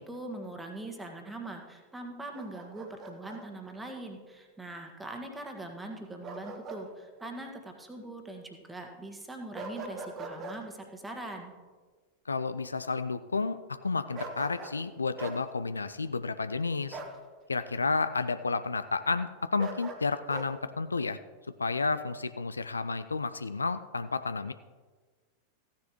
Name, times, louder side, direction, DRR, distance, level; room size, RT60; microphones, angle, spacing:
voice 1, 0.0-11.5, right 2 dB, 10° right, 3 dB, 1.4 m, -42 dB
Bark, 2.3-3.4 6.2-6.9 7.2-7.4 9.5-10.6 14.1-14.8 15.2-15.4 16.9-17.2 19.6-20.5, right 3 dB, 30° right, 1.2 m, -41 dB
voice 2, 12.3-17.0 17.5-21.2 21.6-24.5, left 4 dB, 75° left, 12 dB, 0.4 m, -31 dB
15.0 x 10.0 x 3.0 m, 1.4 s
figure-of-eight pair, 90°, 0 cm